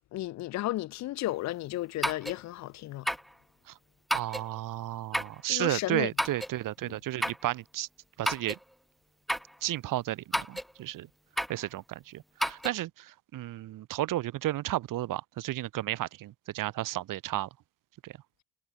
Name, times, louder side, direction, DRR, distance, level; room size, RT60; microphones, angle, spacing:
voice 1, 0.1-3.1 5.5-6.1 6.9-7.0, left 16 dB, 60° left, 0.4 m, -33 dB
sound 1, 2.0-2.4 3.1-3.3 4.1-4.5 5.1-5.4 6.2-6.6 7.2-7.5 8.3-8.6 9.3-9.5 10.3-10.7 11.4-11.6 12.4-12.7, equal, ahead, 0.4 m, -31 dB
voice 2, 4.1-7.9 8.2-8.6 9.6-11.1 11.5-17.5 18.0-18.1, right 15 dB, 75° right, 1.5 m, -33 dB
cardioid pair, 110°, 33 cm